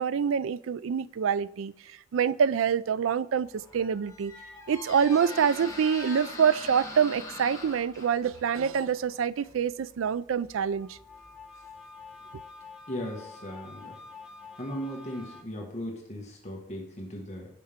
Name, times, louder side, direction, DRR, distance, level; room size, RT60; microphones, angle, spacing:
voice 1, 0.0-1.7 2.1-4.3 4.7-11.0, right 7 dB, 85° right, 17 dB, 0.4 m, -26 dB
sound 1, 3.2-6.8 10.5-15.4, left 5 dB, 5° right, 1.1 m, -49 dB
Squeak, 3.4-12.2, left 2 dB, 15° left, 1.5 m, -44 dB
voice 2, 12.9-14.0 14.6-17.5, equal, 35° left, -1 dB, 1.7 m, -37 dB
16.0 x 5.6 x 3.6 m, 0.74 s
head